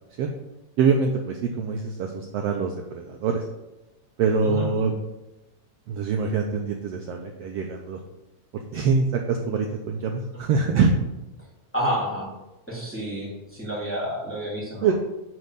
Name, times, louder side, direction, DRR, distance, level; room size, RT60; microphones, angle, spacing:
voice 1, 0.8-3.4 4.2-4.9 5.9-8.0 8.7-10.9 14.8-14.9, right 5 dB, 70° right, 2 dB, 1.6 m, -24 dB
voice 2, 4.4-5.0 10.3-10.4 11.7-12.3 12.7-14.9, equal, 5° left, -5 dB, 2.4 m, -30 dB
10.5 x 4.4 x 6.7 m, 0.97 s
omnidirectional pair, 3.4 m